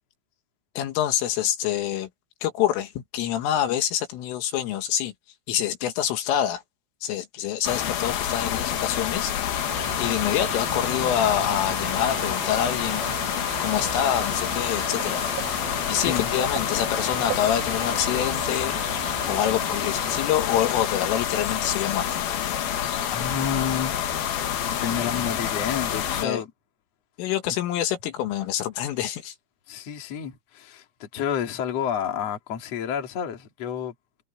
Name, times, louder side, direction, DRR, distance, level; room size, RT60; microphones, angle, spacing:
voice 1, 0.8-2.1 2.4-5.1 5.5-6.6 7.0-9.3 10.0-13.0 13.6-15.2 15.9-18.8 19.2-22.1 26.2-26.4 27.2-29.3, left 11 dB, 75° left, 4.1 m, -26 dB
sound 1, 7.6-26.2, left 9 dB, 60° left, 3.0 m, -28 dB
sound 2, 9.7-20.3, right 15 dB, 80° right, 3.7 m, -38 dB
sound 3, 15.0-18.7 19.0-21.1 21.5-21.6 24.1-24.2, right 12 dB, 45° right, 7.0 m, -42 dB
voice 2, 16.0-16.3 23.1-24.0 24.8-26.5 27.4-27.5 29.7-33.9, left 8 dB, 40° left, 2.9 m, -30 dB
omnidirectional pair, 5.9 m